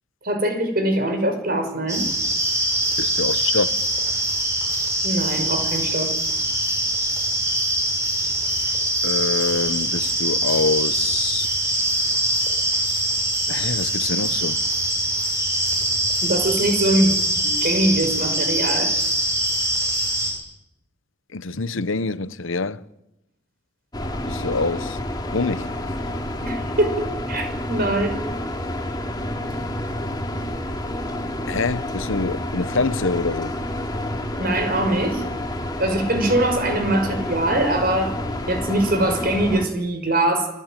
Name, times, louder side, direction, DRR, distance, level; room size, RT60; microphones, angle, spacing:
voice 1, 0.2-2.1 5.0-6.1 16.2-17.2 17.4-18.9 26.4-28.2 34.4-35.3 35.8-38.1 38.5-40.5, right 1 dB, 45° right, 5.9 m, -22 dB
sound 1, 1.9-20.3, right 1 dB, 15° right, 7.0 m, -23 dB
voice 2, 3.0-3.8 9.0-11.5 13.5-14.6 21.3-22.8 24.3-25.0 25.3-25.7 31.4-33.5, left 3 dB, 70° left, 1.0 m, -25 dB
sound 2, 23.9-39.7, left 1 dB, 20° left, 2.9 m, -29 dB
29.5 x 20.0 x 9.1 m
head